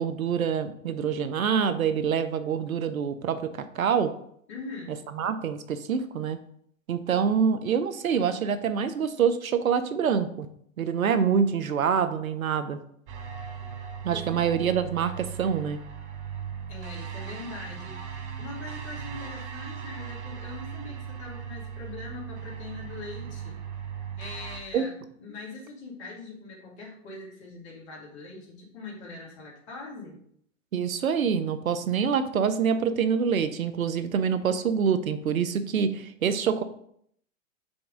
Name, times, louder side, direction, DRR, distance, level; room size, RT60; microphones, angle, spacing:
voice 1, 0.0-4.1 4.9-6.4 6.9-10.5 10.8-12.8 14.0-15.8 24.7-24.9 30.7-36.6, right 7 dB, 90° right, 11 dB, 0.7 m, -26 dB
voice 2, 4.5-5.0 14.1-14.4 16.7-23.6 24.2-24.9 25.2-30.2, left 3 dB, 50° left, -3 dB, 2.4 m, -42 dB
sound 1, 13.1-24.6, right 7 dB, 60° right, 1.1 m, -38 dB
5.3 x 3.4 x 5.2 m, 0.67 s
hypercardioid pair, 120°, 40 cm